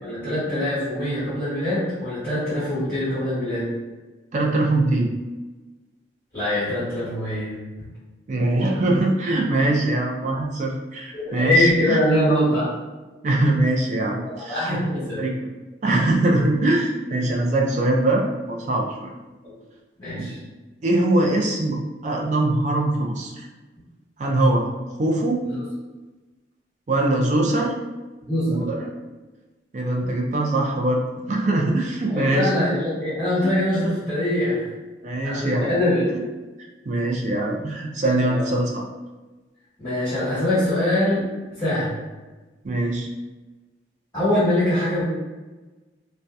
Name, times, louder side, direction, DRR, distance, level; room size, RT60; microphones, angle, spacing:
voice 1, 0.0-3.7 6.3-7.6 11.1-12.7 14.5-15.2 19.4-19.5 20.0-20.4 28.3-28.6 32.1-34.7 35.2-36.1 38.2-38.5 39.8-41.3 41.6-42.0 44.1-45.1, left 1 dB, 20° left, -14 dB, 1.0 m, -23 dB
voice 2, 4.3-5.1 8.3-12.0 13.2-15.3 15.8-19.1 20.2-20.3 20.8-23.5 24.2-25.4 26.9-27.8 28.5-28.9 29.7-32.5 33.4-33.5 35.0-35.7 36.9-38.9 42.6-43.1, right 2 dB, 40° right, 0 dB, 0.3 m, -22 dB
2.7 x 2.1 x 2.2 m, 1.2 s
head